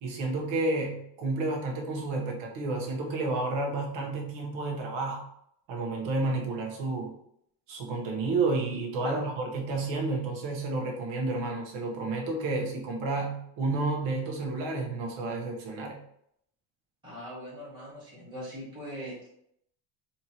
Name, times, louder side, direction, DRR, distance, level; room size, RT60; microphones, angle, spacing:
voice 1, 0.0-5.2 5.7-7.1 7.7-16.0, right 3 dB, 70° right, 0 dB, 1.3 m, -31 dB
voice 2, 17.0-19.3, equal, 10° right, -9 dB, 1.6 m, -40 dB
4.5 x 2.9 x 2.9 m, 0.72 s
cardioid pair, 165°, 46 cm